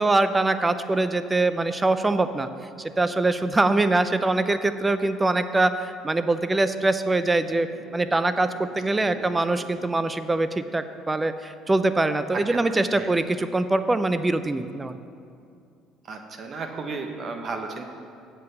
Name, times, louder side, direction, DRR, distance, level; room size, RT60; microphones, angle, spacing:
voice 1, 0.0-2.5 2.8-7.7 7.9-14.9, right 2 dB, 20° right, 11 dB, 0.5 m, -23 dB
sound 1, 7.4-10.1, right 2 dB, 75° right, 2.5 m, -47 dB
voice 2, 9.0-9.3 12.3-13.1 16.1-17.8, right 4 dB, 45° right, 4 dB, 1.1 m, -34 dB
7.6 x 5.7 x 7.6 m, 2.5 s
supercardioid pair, 85°, 0 cm